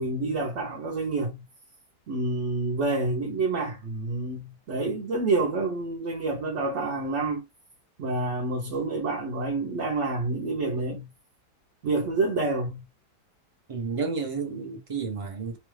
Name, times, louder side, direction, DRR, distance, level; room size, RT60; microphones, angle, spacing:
voice 1, 0.0-1.4 2.1-7.4 8.0-11.1 11.8-12.8, right 3 dB, 55° right, 0.9 m, -28 dB
voice 2, 13.7-15.6, right 5 dB, 40° right, 0.4 m, -31 dB
3.0 x 2.3 x 3.1 m
omnidirectional pair, 1.8 m